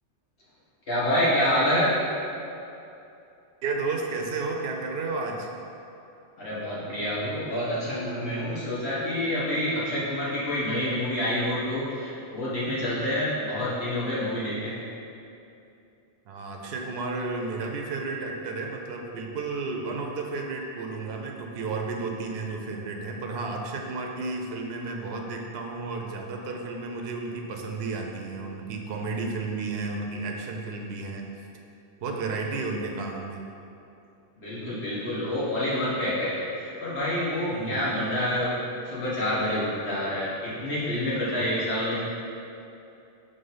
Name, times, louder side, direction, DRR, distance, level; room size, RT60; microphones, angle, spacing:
voice 1, 0.9-1.9 6.4-14.8 34.4-38.5 38.8-42.0, left 1 dB, 70° left, -9 dB, 1.9 m, -27 dB
voice 2, 3.6-5.5 16.3-31.3 32.0-33.4 37.5-37.8 41.4-41.5, right 3 dB, 65° right, 1 dB, 0.8 m, -32 dB
5.3 x 3.5 x 5.5 m, 2.7 s
omnidirectional pair, 1.1 m